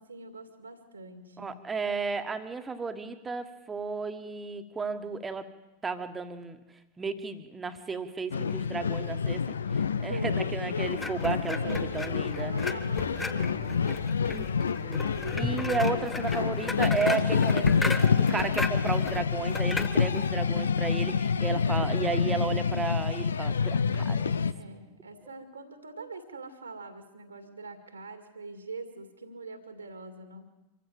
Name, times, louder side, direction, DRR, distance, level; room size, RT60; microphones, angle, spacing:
voice 1, 0.0-1.5 10.0-10.5 11.5-12.0 12.3-14.8 24.5-30.5, right 3 dB, 75° right, 7 dB, 2.4 m, -44 dB
voice 2, 1.4-5.5 5.8-6.6 7.0-12.5 14.3-14.4 14.8-24.4, right 4 dB, 15° right, 9 dB, 1.6 m, -33 dB
sound 1, 8.3-24.5, left 6 dB, 70° left, 0.7 m, -28 dB
sound 2, 11.0-20.3, left 3 dB, 10° left, 1.2 m, -36 dB
25.5 x 15.0 x 7.6 m, 1.0 s
figure-of-eight pair, 90°, 0 cm